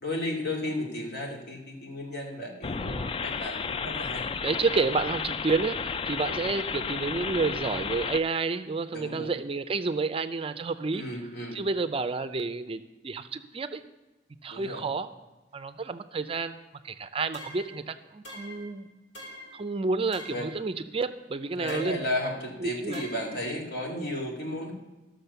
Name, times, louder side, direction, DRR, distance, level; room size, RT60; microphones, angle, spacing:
voice 1, 0.0-2.8 3.2-4.3 8.9-9.3 10.9-11.6 14.5-14.8 20.3-20.5 21.6-24.7, left 1 dB, 60° left, 0 dB, 2.4 m, -33 dB
sound 1, 2.6-8.2, left 5 dB, 30° left, 0.3 m, -32 dB
voice 2, 2.8-3.2 4.4-11.0 11.5-13.8 14.4-15.1 15.5-18.9 19.5-22.0 22.6-23.0, right 4 dB, 30° right, 11 dB, 0.4 m, -30 dB
sound 2, 17.3-17.8 18.2-18.7 19.1-19.6 20.1-20.6 21.7-22.1 22.9-23.4, left 1 dB, 85° left, 4.6 m, -44 dB
13.0 x 6.4 x 6.8 m, 1.1 s
head